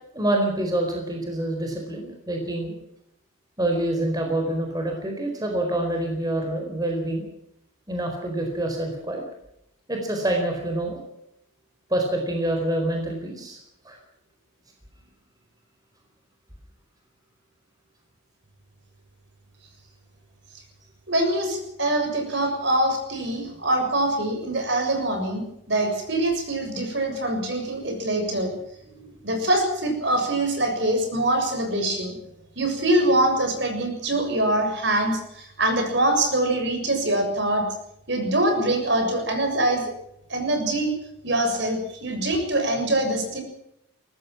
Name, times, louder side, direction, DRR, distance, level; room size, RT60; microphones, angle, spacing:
voice 1, 0.1-2.7 3.6-7.2 7.9-9.2 9.9-11.0 11.9-13.6 13.8-14.0 28.9-29.1, right 1 dB, 20° right, 2 dB, 4.5 m, -26 dB
voice 2, 21.1-28.5 29.2-32.1 32.6-37.6 38.1-39.8 40.3-40.9 41.2-43.4, right 1 dB, 60° right, 5 dB, 6.9 m, -24 dB
22.5 x 19.0 x 6.2 m, 0.78 s
head